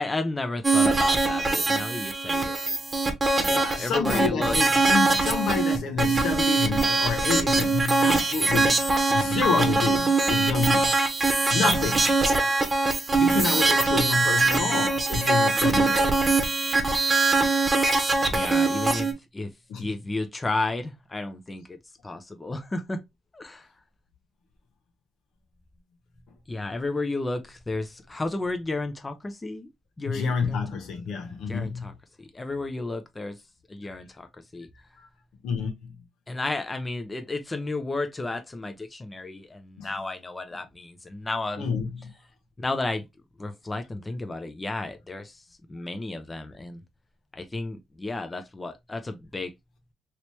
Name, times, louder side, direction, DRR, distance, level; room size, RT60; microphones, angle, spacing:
voice 1, 0.0-2.7 3.4-4.6 13.3-13.7 18.3-21.6 22.0-23.0 23.3-23.7 26.5-29.7 30.0-30.7 31.5-33.4 33.7-34.3 34.5-34.7 36.3-41.7 42.6-43.0 43.4-45.4 45.7-46.8 47.3-49.5, left 2 dB, 20° left, 0.6 m, -32 dB
sound 1, 0.6-19.1, right 3 dB, 25° right, 1.0 m, -22 dB
voice 2, 3.4-10.9 11.5-12.5 13.2-16.3 19.7-19.9 30.1-31.9 35.4-35.9 39.8-39.9 41.6-41.9, left 5 dB, 80° left, 0.9 m, -29 dB
3.0 x 3.0 x 3.1 m
cardioid pair, 90°, 0 cm